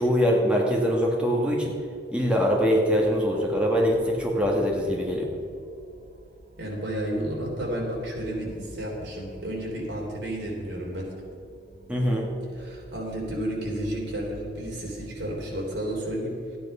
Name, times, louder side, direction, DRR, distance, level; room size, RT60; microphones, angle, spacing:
voice 1, 0.0-1.7 2.1-5.3 11.9-12.3, equal, 5° right, -2 dB, 1.7 m, -23 dB
sound 1, 1.6-16.0, equal, 45° right, 1.8 m, -49 dB
voice 2, 6.6-11.1 12.5-16.4, right 1 dB, 70° right, -2 dB, 3.5 m, -32 dB
13.5 x 9.3 x 5.6 m, 2.5 s
head